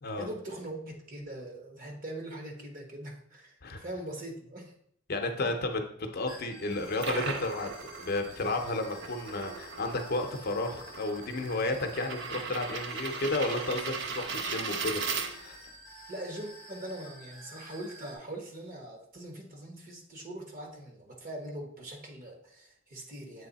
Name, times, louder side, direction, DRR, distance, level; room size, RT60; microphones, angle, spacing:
voice 1, 0.2-4.7 16.1-23.5, right 1 dB, 45° right, 1 dB, 1.2 m, -42 dB
voice 2, 5.1-5.8 6.1-15.6, left 2 dB, 50° left, 4 dB, 0.7 m, -32 dB
sound 1, 6.3-18.2, right 1 dB, 80° right, 2.1 m, -50 dB
sound 2, 6.7-15.7, right 5 dB, 60° right, 0.6 m, -38 dB
7.5 x 3.2 x 4.0 m, 0.68 s
head